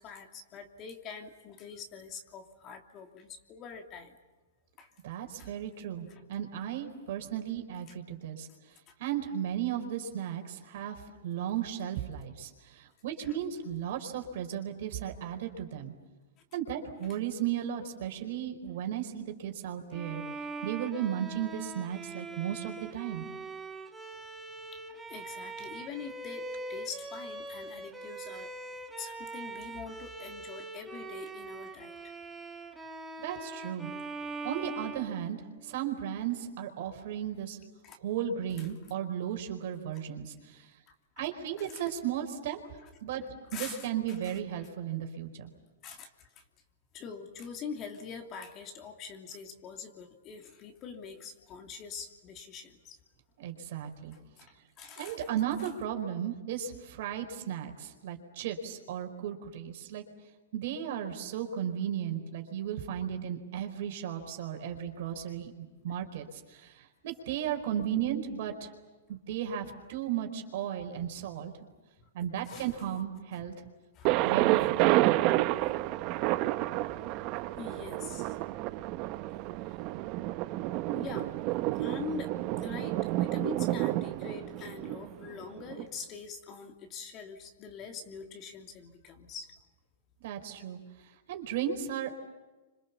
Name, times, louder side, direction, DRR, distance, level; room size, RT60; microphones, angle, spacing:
voice 1, 0.0-4.1 4.8-4.9 5.4-5.5 6.1-6.2 8.9-9.0 13.2-13.3 24.7-24.8 25.1-28.5 29.0-31.9 37.8-38.0 38.6-38.7 41.2-41.3 41.6-41.8 42.8-42.9 43.5-43.9 44.2-44.7 45.8-46.4 46.9-53.0 54.1-55.3 72.4-72.7 73.3-73.4 73.9-74.1 75.6-75.9 76.1-76.3 76.7-78.4 79.7-79.8 80.9-81.3 81.7-89.5, left 5 dB, 30° left, 4 dB, 2.9 m, -44 dB
voice 2, 5.0-8.5 9.0-11.0 11.2-15.9 16.5-20.2 20.6-23.2 33.2-33.9 34.4-35.4 35.6-37.6 38.0-40.7 41.2-42.6 43.0-43.2 43.5-45.5 53.4-54.2 55.0-60.0 60.5-68.7 69.1-71.5 72.1-73.5 74.2-75.0 90.2-90.8 91.3-92.1, right 10 dB, 55° right, 5 dB, 4.7 m, -35 dB
Bowed string instrument, 19.9-35.8, right 3 dB, 5° right, 2.2 m, -42 dB
Thunder, 74.0-85.8, right 17 dB, 35° right, 0.9 m, -30 dB
30.0 x 26.0 x 7.2 m, 1.2 s
hypercardioid pair, 150°, 0 cm